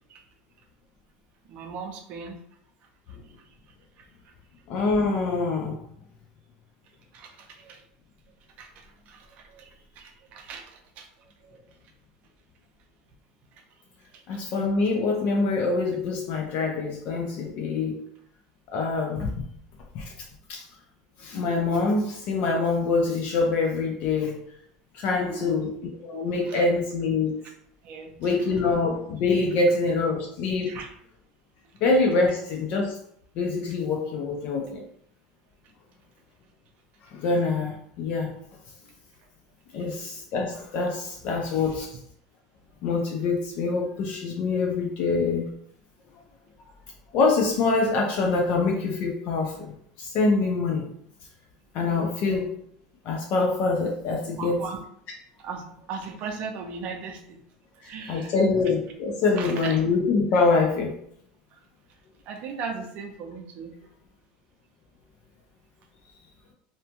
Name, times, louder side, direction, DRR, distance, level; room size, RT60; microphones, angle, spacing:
voice 1, 1.5-2.4 7.1-7.8 8.6-11.1 11.4-11.6 14.3-14.4 25.2-25.7 26.5-26.6 27.8-28.4 30.6-30.9 54.4-54.8 55.4-57.4 57.8-58.4 59.4-59.8 62.3-63.8, right 5 dB, 50° right, 3 dB, 0.5 m, -38 dB
voice 2, 4.7-5.8 14.3-18.0 18.7-19.4 19.9-20.1 20.5-20.6 21.2-24.4 24.9-27.4 28.2-30.8 31.8-33.0 33.4-34.8 37.1-38.3 39.7-41.9 42.8-45.5 47.1-50.9 51.7-52.5 53.0-54.6 57.8-60.9, left 3 dB, 50° left, 0 dB, 0.5 m, -25 dB
2.7 x 2.2 x 2.8 m, 0.68 s
supercardioid pair, 130°, 3 cm